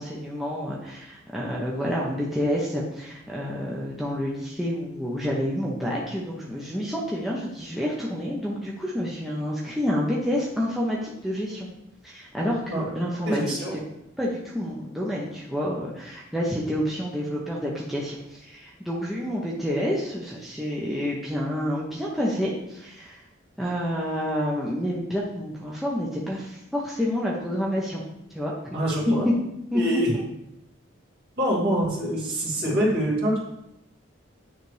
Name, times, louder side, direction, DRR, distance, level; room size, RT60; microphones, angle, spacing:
voice 1, 0.0-11.7 12.0-13.8 14.2-23.2 23.6-28.0 28.3-28.8 29.1-29.3 29.7-30.0, equal, ahead, -5 dB, 0.7 m, -28 dB
voice 2, 13.3-13.7 28.7-29.3 29.7-30.1 31.4-33.4, equal, 55° right, -6 dB, 2.5 m, -25 dB
9.2 x 3.3 x 3.3 m, 0.84 s
head